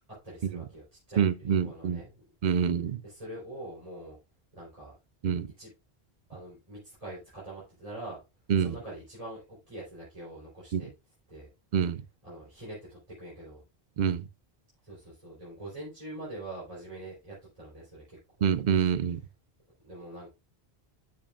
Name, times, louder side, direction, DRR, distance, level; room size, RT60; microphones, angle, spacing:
voice 1, 0.2-2.2 3.0-4.2 4.5-5.0 5.6-5.7 6.3-8.2 8.6-10.9 11.3-11.5 12.2-13.6 14.8-18.2 19.8-20.3, right 1 dB, 35° right, 3.6 m, -44 dB
voice 2, 1.2-2.0 2.4-3.0 5.2-5.5 8.5-8.7 10.7-10.8 11.7-12.0 14.0-14.2 18.4-19.2, right 7 dB, 55° right, 0.6 m, -26 dB
12.0 x 5.3 x 2.4 m
omnidirectional pair, 1.0 m